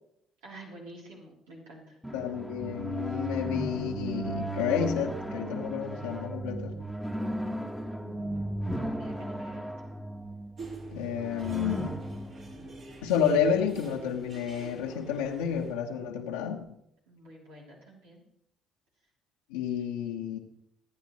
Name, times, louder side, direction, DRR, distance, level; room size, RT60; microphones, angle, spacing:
voice 1, 0.4-2.0 7.2-9.6 17.1-18.2, right 1 dB, 80° right, -4 dB, 3.2 m, -49 dB
sound 1, 2.0-13.7, right 1 dB, 5° right, 1.5 m, -36 dB
voice 2, 2.1-6.7 10.9-12.0 13.0-16.7 19.5-20.4, left 7 dB, 85° left, -1 dB, 1.3 m, -30 dB
sound 2, 10.6-15.7, right 3 dB, 55° right, 4.2 m, -47 dB
24.0 x 9.3 x 3.2 m, 0.76 s
hypercardioid pair, 55°, 0 cm